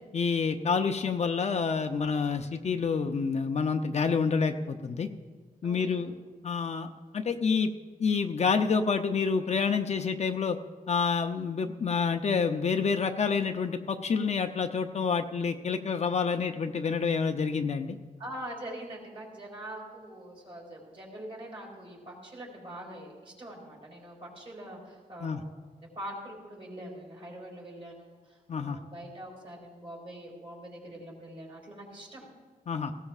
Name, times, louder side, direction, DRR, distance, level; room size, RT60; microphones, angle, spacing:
voice 1, 0.1-5.1 5.6-6.1 6.4-6.9 7.1-7.7 8.0-10.6 10.9-18.0 25.2-25.4 28.5-28.8 32.7-32.9, left 5 dB, 45° left, 6 dB, 0.5 m, -28 dB
voice 2, 5.6-6.1 18.2-32.3, right 1 dB, 35° right, -2 dB, 3.6 m, -44 dB
18.5 x 16.5 x 2.4 m, 1.4 s
wide cardioid pair, 170°, 15 cm